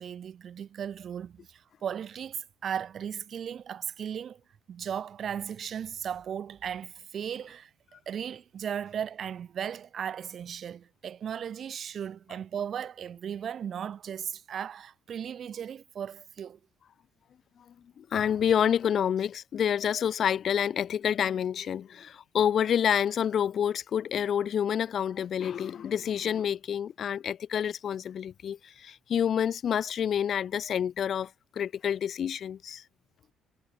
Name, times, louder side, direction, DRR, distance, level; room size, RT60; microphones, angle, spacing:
voice 1, 0.0-4.4 4.7-7.7 8.1-16.6, right 8 dB, 55° right, 1.8 m, -36 dB
voice 2, 18.0-31.3 31.6-32.8, left 8 dB, 55° left, 0.4 m, -28 dB
hypercardioid pair, 50°, 0 cm